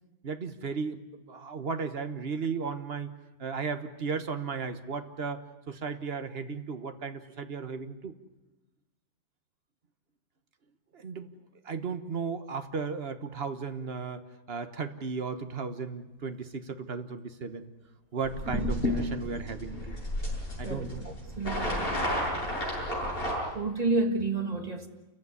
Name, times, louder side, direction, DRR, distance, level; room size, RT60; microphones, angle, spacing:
voice 1, 0.2-3.1 3.4-5.4 5.7-8.1 10.9-11.3 11.6-17.7 18.1-19.9 20.6-21.0, right 5 dB, 35° right, 1.2 m, -35 dB
sound 1, 18.2-23.4, left 1 dB, 30° left, 7.9 m, -32 dB
voice 2, 20.6-21.9 23.5-24.9, right 3 dB, 20° right, 1.7 m, -30 dB
28.0 x 15.5 x 9.7 m
omnidirectional pair, 2.1 m